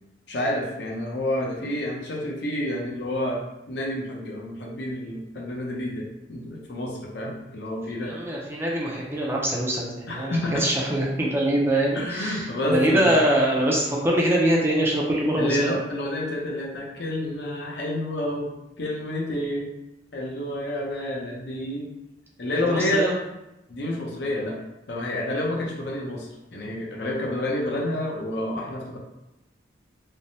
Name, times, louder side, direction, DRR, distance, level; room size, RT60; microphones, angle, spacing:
voice 1, 0.3-3.4 3.7-8.2 10.1-10.6 11.9-13.1 15.4-18.5 18.8-19.7 20.1-21.9 22.4-23.1 23.7-24.6 24.9-29.0, left 1 dB, 65° left, -2 dB, 0.6 m, -29 dB
voice 2, 8.0-15.7 22.5-23.1, right 1 dB, 15° right, -3 dB, 0.4 m, -23 dB
3.2 x 2.0 x 2.6 m, 0.94 s
head